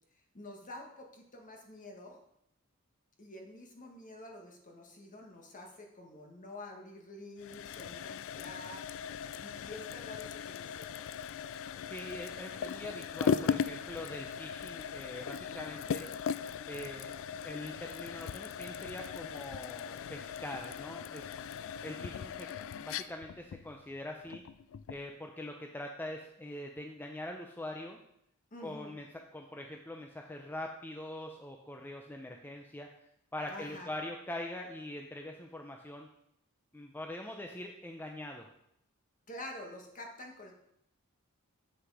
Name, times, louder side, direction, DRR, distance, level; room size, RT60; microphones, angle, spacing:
voice 1, 0.3-2.2 3.2-9.1 9.4-10.9 28.5-28.9 33.5-33.9 39.3-40.5, left 1 dB, 35° left, 2 dB, 1.5 m, -48 dB
sound 1, 7.4-25.1, left 7 dB, 60° left, 0.3 m, -38 dB
voice 2, 11.8-16.1 16.7-17.1 17.4-21.4 21.8-22.5 22.8-24.4 24.9-28.0 28.6-29.1 29.3-32.9 33.3-36.1 36.7-38.5, left 1 dB, 10° left, 2 dB, 0.5 m, -43 dB
7.8 x 6.3 x 4.8 m, 0.76 s
head